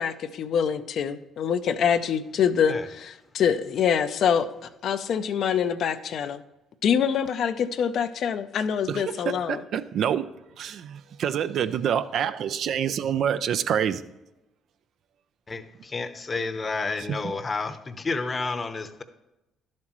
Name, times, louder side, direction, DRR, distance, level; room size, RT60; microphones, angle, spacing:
voice 1, 0.0-6.4 6.8-9.6, left 7 dB, 65° left, 10 dB, 0.5 m, -25 dB
voice 2, 9.5-10.3 10.6-14.0 17.1-17.2, right 9 dB, 65° right, 13 dB, 0.4 m, -26 dB
voice 3, 15.5-19.0, left 3 dB, 30° left, 11 dB, 0.8 m, -30 dB
11.5 x 7.5 x 3.0 m, 0.95 s
supercardioid pair, 70°, 0 cm